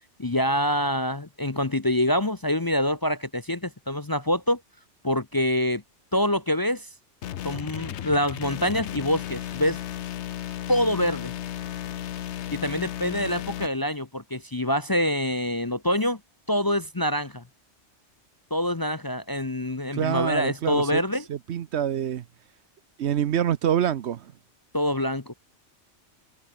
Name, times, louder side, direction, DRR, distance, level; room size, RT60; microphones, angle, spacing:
voice 1, 0.2-4.6 5.0-5.8 6.1-6.9 7.4-9.8 10.7-11.3 12.5-16.2 16.5-17.4 18.5-21.2 24.7-25.3, left 1 dB, 20° left, 0.7 m, -25 dB
sound 1, 7.2-13.7, left 11 dB, 70° left, 1.0 m, -34 dB
voice 2, 19.9-21.0 21.3-22.2 23.0-24.3, right 10 dB, 70° right, 1.0 m, -26 dB
omnidirectional pair, 1.2 m